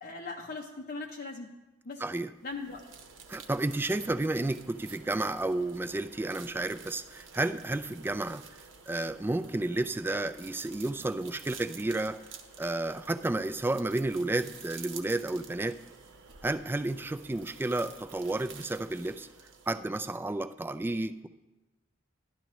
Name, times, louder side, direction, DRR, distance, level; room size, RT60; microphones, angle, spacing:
voice 1, 0.0-1.5 1.8-2.0 2.4-2.9, left 3 dB, 55° left, -1 dB, 0.7 m, -39 dB
voice 2, 2.0-2.3 3.3-12.2 12.6-15.8 16.4-19.3 19.7-21.3, right 2 dB, 10° right, 12 dB, 0.3 m, -31 dB
sound 1, 2.4-20.2, right 6 dB, 80° right, 1.0 m, -51 dB
12.0 x 11.5 x 3.1 m, 1.1 s
head